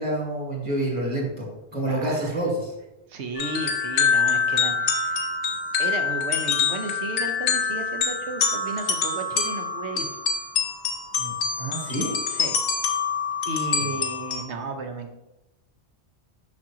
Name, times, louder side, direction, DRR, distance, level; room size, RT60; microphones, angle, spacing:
voice 1, 0.0-1.4 1.7-2.7 11.2-12.2 13.8-13.9, right 1 dB, 30° right, -4 dB, 1.7 m, -28 dB
voice 2, 1.8-2.3 3.1-5.3 5.8-10.2 12.3-12.6 13.5-15.1, right 3 dB, 80° right, 6 dB, 1.1 m, -34 dB
sound 1, 3.4-14.4, left 5 dB, 90° left, 1.1 m, -25 dB
6.4 x 6.0 x 2.9 m, 0.93 s
omnidirectional pair, 1.1 m